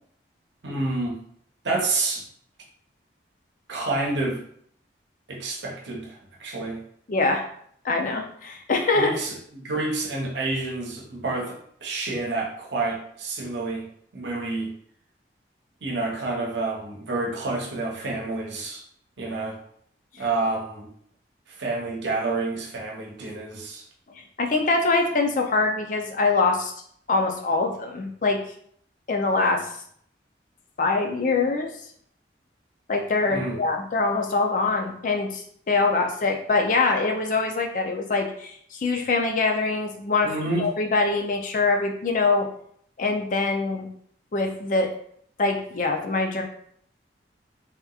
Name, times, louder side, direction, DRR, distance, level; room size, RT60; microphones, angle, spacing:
voice 1, 0.6-1.2 1.6-2.2 3.7-4.4 5.3-6.8 8.9-13.8 14.1-14.7 15.8-18.8 19.2-19.6 20.2-20.9 21.6-23.8 33.3-33.6 40.2-40.7, right 2 dB, 75° right, -1 dB, 0.8 m, -29 dB
voice 2, 7.1-7.4 7.8-9.1 24.2-26.7 27.1-28.4 29.1-29.7 30.8-31.7 32.9-40.3 40.6-42.5 43.0-43.9 44.3-44.9 45.4-46.4, left 3 dB, 45° left, 3 dB, 0.4 m, -24 dB
3.5 x 2.9 x 2.3 m, 0.64 s
head